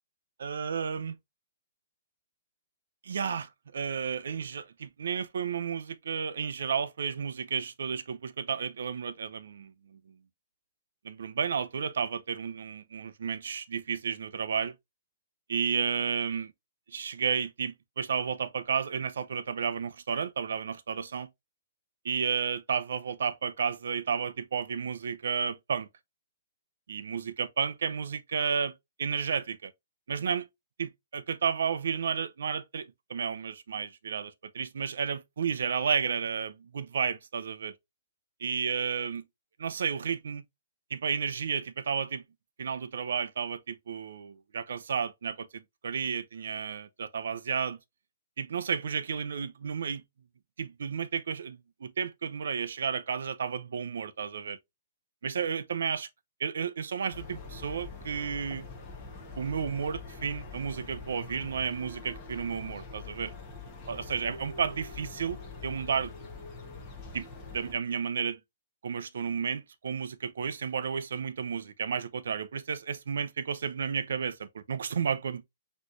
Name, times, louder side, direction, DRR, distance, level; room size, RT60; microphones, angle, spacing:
voice 1, 0.4-1.1 3.0-10.2 11.0-14.7 15.5-16.5 16.9-21.3 22.0-25.9 26.9-28.7 29.0-29.7 30.1-30.5 30.8-37.7 38.4-39.2 39.6-40.4 40.9-42.2 42.6-47.8 48.4-50.0 50.6-54.6 55.2-56.1 56.4-58.7 59.4-63.3 63.9-65.4 65.6-66.1 67.1-67.3 67.5-68.4 68.8-75.4, right 6 dB, 70° right, 0.6 m, -32 dB
sound 1, 57.1-67.7, left 4 dB, 15° left, 1.2 m, -44 dB
6.2 x 3.1 x 2.5 m
hypercardioid pair, 175°, 0 cm